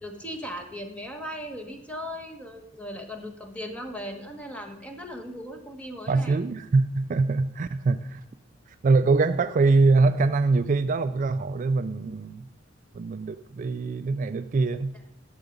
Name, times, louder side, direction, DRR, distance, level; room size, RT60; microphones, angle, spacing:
voice 1, 0.0-6.4, equal, 5° left, 3 dB, 1.2 m, -38 dB
voice 2, 6.1-8.2 8.8-12.5 12.9-15.0, right 3 dB, 45° right, 11 dB, 0.3 m, -23 dB
12.0 x 6.9 x 5.1 m, 0.82 s
head